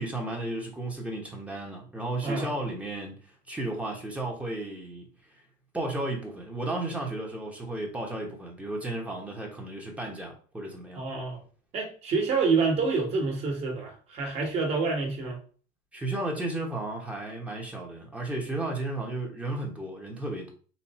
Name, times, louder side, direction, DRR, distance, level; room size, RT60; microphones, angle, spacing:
voice 1, 0.0-3.2 3.5-5.1 5.7-11.0 15.9-20.5, right 2 dB, 5° right, 1.0 m, -33 dB
voice 2, 2.2-2.6 10.9-11.4 11.7-15.4, right 4 dB, 40° right, 1.5 m, -27 dB
4.2 x 2.7 x 4.2 m
cardioid pair, 140°, 17 cm